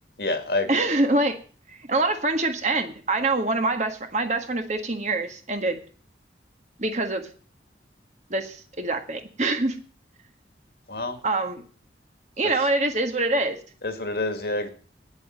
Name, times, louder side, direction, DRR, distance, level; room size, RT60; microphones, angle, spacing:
voice 1, 0.2-0.8 10.9-11.2 13.8-14.7, left 2 dB, 55° left, 7 dB, 2.1 m, -27 dB
voice 2, 0.7-1.4 1.7-5.8 6.8-7.3 8.3-9.8 11.2-11.6 12.4-13.6, right 2 dB, 40° right, 6 dB, 1.7 m, -25 dB
9.6 x 8.3 x 9.2 m, 0.41 s
head